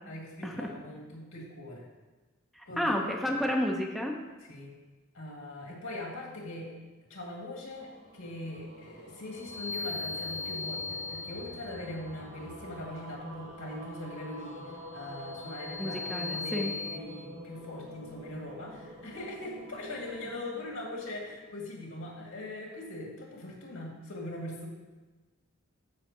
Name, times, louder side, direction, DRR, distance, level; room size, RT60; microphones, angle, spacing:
voice 1, 0.1-1.9 2.7-3.4 4.5-4.7 5.1-6.7 7.0-24.7, left 1 dB, 80° left, -2 dB, 2.3 m, -41 dB
voice 2, 2.6-4.1 15.8-16.7, left 1 dB, ahead, 1 dB, 0.7 m, -31 dB
sound 1, 7.4-21.8, equal, 60° right, 2.2 m, -48 dB
sound 2, 9.4-11.9 14.9-17.0, left 4 dB, 60° left, 0.6 m, -38 dB
14.0 x 5.6 x 3.0 m, 1.2 s
head